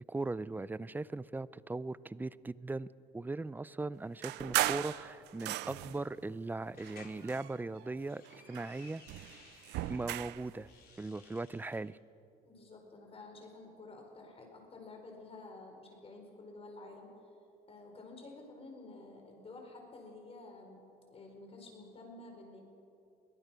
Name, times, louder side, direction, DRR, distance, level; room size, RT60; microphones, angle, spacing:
voice 1, 0.1-2.9 3.1-9.0 9.9-10.7 11.0-12.0, right 3 dB, 10° right, 19 dB, 0.4 m, -39 dB
sound 1, 4.2-6.1 6.8-7.9 8.3-10.5, right 16 dB, 85° right, 0.6 m, -37 dB
sound 2, 6.7-7.2 7.8-10.1 10.5-11.8, left 6 dB, 65° left, 3.6 m, -58 dB
voice 2, 12.4-17.2 17.7-20.8 21.1-22.6, left 2 dB, 35° left, 2 dB, 4.7 m, -51 dB
22.5 x 18.0 x 6.3 m, 2.6 s
cardioid pair, 110°, 17 cm